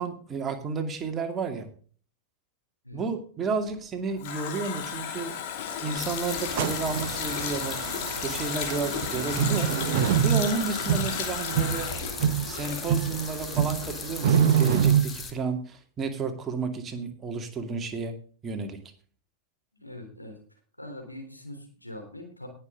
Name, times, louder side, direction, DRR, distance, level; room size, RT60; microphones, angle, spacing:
voice 1, 0.0-1.7 2.9-5.3 5.7-7.8 8.2-9.7 10.2-11.9 12.5-18.1 18.4-18.8, right 4 dB, 25° right, 5 dB, 2.4 m, -32 dB
Water tap faucet, 3.7-13.3 13.6-13.7, left 8 dB, 50° left, 2.7 m, -34 dB
sound 1, 6.0-15.3, left 5 dB, 20° left, 2.2 m, -38 dB
sound 2, 6.4-15.0, right 8 dB, 50° right, 1.5 m, -26 dB
voice 2, 19.7-20.4 20.8-22.5, left 1 dB, 90° left, 5 dB, 3.5 m, -42 dB
19.5 x 7.4 x 3.7 m, 0.43 s
figure-of-eight pair, 90°, 0 cm